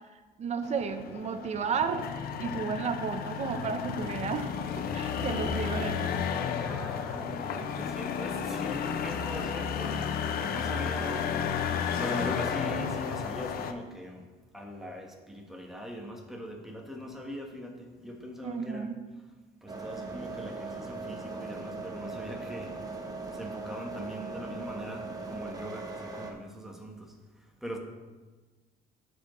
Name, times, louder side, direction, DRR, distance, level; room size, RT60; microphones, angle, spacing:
voice 1, 0.4-6.2 18.4-19.0, right 5 dB, 40° right, 9 dB, 0.7 m, -33 dB
sound 1, 0.6-13.7, left 7 dB, 65° left, 0.6 m, -32 dB
voice 2, 6.6-18.9 19.6-27.8, equal, ahead, 1 dB, 1.3 m, -41 dB
sound 2, 19.7-26.3, right 3 dB, 20° right, 1.0 m, -39 dB
12.0 x 4.7 x 3.1 m, 1.3 s
cardioid pair, 110°, 17 cm